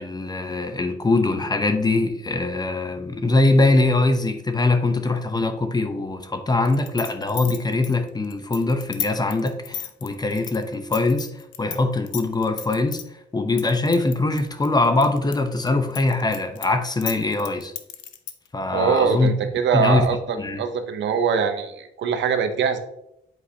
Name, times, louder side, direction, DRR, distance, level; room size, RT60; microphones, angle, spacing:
voice 1, 0.0-13.0 13.3-17.7 18.5-19.3 19.7-20.6, left 2 dB, 20° left, 7 dB, 0.7 m, -22 dB
sound 1, 6.6-11.8 12.1-13.0 13.6-15.4 15.7-18.5, left 9 dB, 70° left, 0.7 m, -33 dB
voice 2, 18.7-22.8, right 6 dB, 65° right, 8 dB, 0.7 m, -22 dB
7.9 x 4.8 x 2.8 m, 0.81 s
cardioid pair, 90°, 20 cm